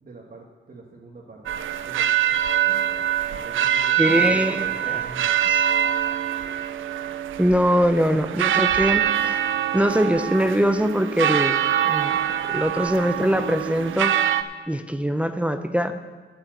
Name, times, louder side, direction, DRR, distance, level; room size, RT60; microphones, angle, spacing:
voice 1, 0.0-1.4 1.8-2.3 2.6-5.3, right 3 dB, 45° right, -2 dB, 1.5 m, -44 dB
sound 1, 1.5-14.4, right 10 dB, 90° right, 0.5 m, -24 dB
voice 2, 4.0-5.0 5.5-5.7 7.4-9.4 9.7-12.2 12.5-14.2 14.7-16.0, equal, 5° right, 8 dB, 0.6 m, -22 dB
8.8 x 7.2 x 7.7 m, 1.4 s
cardioid pair, 65°, 20 cm